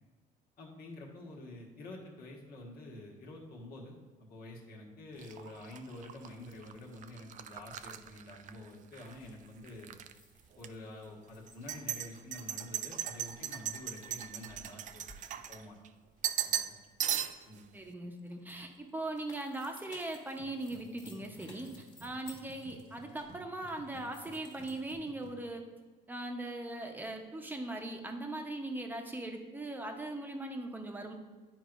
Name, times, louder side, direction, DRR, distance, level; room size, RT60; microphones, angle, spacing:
voice 1, 0.6-3.9 4.3-9.9 10.6-15.0 15.5-15.8 16.4-16.7 17.5-17.6, left 1 dB, 65° left, -1 dB, 1.5 m, -48 dB
sound 1, 5.2-9.1 9.5-10.1 10.6-10.7 11.5-15.9 16.2-16.7 17.0-17.6, right 10 dB, 50° right, 0.4 m, -38 dB
sound 2, 9.1-16.9 17.3-25.0, left 1 dB, 30° left, 1.7 m, -59 dB
voice 2, 17.7-25.7 26.1-31.1, right 2 dB, 10° right, 4 dB, 0.8 m, -40 dB
sound 3, 20.4-25.5, right 1 dB, 65° right, 1.0 m, -55 dB
9.9 x 4.6 x 2.6 m, 1.4 s
cardioid pair, 110°, 17 cm